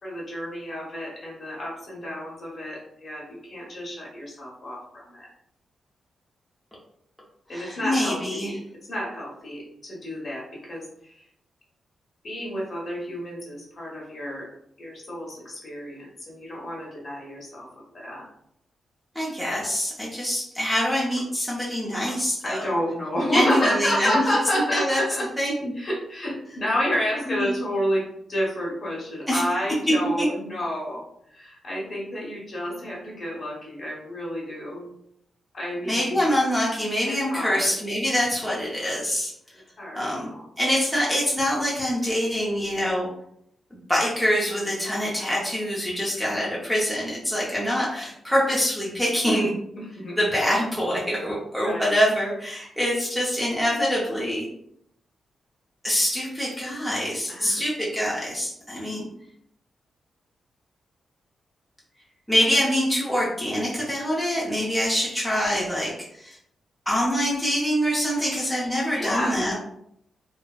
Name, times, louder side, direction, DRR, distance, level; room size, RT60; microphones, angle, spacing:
voice 1, 0.0-5.3 7.5-8.6 8.9-11.2 12.2-14.5 14.8-17.7 17.9-18.2 22.4-25.3 25.8-28.0 28.3-31.0 31.3-34.9 35.5-36.2 37.0-37.7 39.8-40.5 49.8-50.2 51.6-51.9 57.3-57.6 68.9-69.4, equal, 45° left, -4 dB, 1.1 m, -30 dB
voice 2, 7.5-8.5 19.1-22.7 23.3-24.2 24.7-25.0 25.4-25.7 27.3-27.6 29.3-29.4 30.2-30.3 35.9-39.3 39.9-40.3 40.6-43.1 43.7-49.5 50.2-54.5 55.8-59.1 62.3-66.4 66.9-69.5, equal, ahead, -6 dB, 0.6 m, -25 dB
3.2 x 2.1 x 2.3 m, 0.73 s
wide cardioid pair, 130°, 0 cm